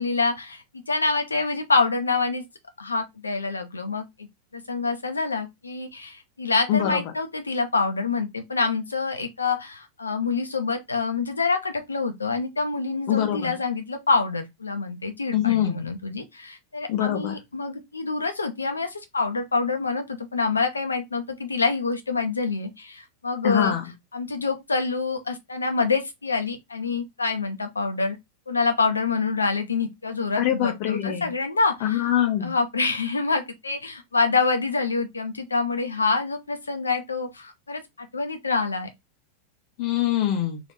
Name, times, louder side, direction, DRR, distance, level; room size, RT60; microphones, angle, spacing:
voice 1, 0.0-2.4 2.8-4.3 4.5-23.7 24.1-28.2 28.5-32.0 32.4-38.9, left 4 dB, 75° left, 0.9 m, -26 dB
voice 2, 6.7-7.0 13.1-13.5 15.3-15.8 16.9-17.3 23.4-23.8 30.4-31.3 31.8-32.5 39.8-40.6, left 11 dB, 45° left, 1.0 m, -24 dB
3.5 x 3.0 x 4.1 m
figure-of-eight pair, 90°, 0 cm